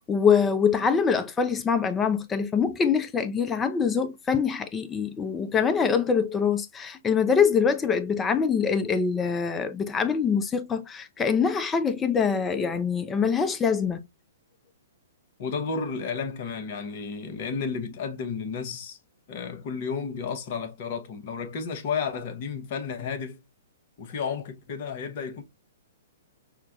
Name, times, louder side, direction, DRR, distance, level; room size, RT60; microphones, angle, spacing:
voice 1, 0.0-14.0, left 6 dB, 15° left, 0.6 m, -24 dB
voice 2, 15.4-19.0 19.3-23.4 24.0-25.4, left 5 dB, 45° left, 0.9 m, -32 dB
5.7 x 2.2 x 2.4 m
figure-of-eight pair, 120°, 0 cm